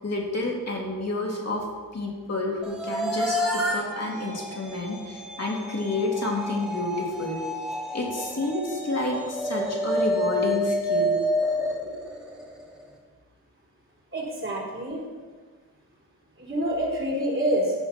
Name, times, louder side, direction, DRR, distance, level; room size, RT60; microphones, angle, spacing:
voice 1, 0.0-1.6 1.9-7.4 7.9-11.1, left 2 dB, 45° left, -2 dB, 3.0 m, -29 dB
sound 1, 2.6-12.8, equal, ahead, 2.5 m, -29 dB
voice 2, 14.1-15.0 16.4-17.7, right 1 dB, 35° right, -3 dB, 3.6 m, -27 dB
15.0 x 5.9 x 5.9 m, 1.4 s
wide cardioid pair, 100°, 36 cm